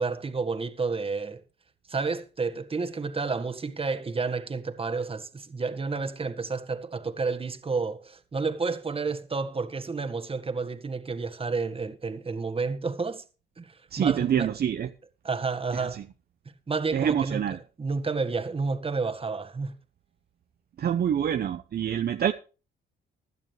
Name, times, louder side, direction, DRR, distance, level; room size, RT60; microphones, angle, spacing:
voice 1, 0.0-1.4 1.9-13.2 13.6-14.5 15.2-16.0 16.7-19.8, right 4 dB, 30° right, 1.6 m, -30 dB
voice 2, 13.9-14.9 15.7-16.0 16.9-17.6 20.8-22.3, right 9 dB, 50° right, 0.8 m, -26 dB
16.5 x 11.5 x 3.3 m
cardioid pair, 90°, 20 cm